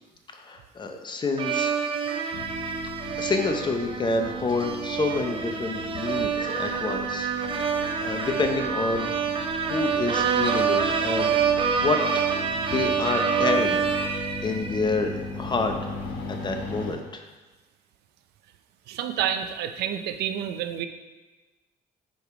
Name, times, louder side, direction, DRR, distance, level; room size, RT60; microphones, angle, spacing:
voice 1, 0.4-1.7 3.2-7.3 7.6-9.3 9.6-11.5 11.8-12.2 12.6-13.8 14.4-15.9 16.3-17.2, left 3 dB, 25° left, 5 dB, 0.7 m, -28 dB
sound 1, 1.4-15.1, right 6 dB, 30° right, 0.6 m, -27 dB
sound 2, 2.3-16.9, left 3 dB, 70° left, 1.3 m, -38 dB
voice 2, 18.9-20.9, right 9 dB, 75° right, 9 dB, 0.5 m, -29 dB
5.2 x 4.7 x 4.9 m, 1.2 s
cardioid pair, 110°, 17 cm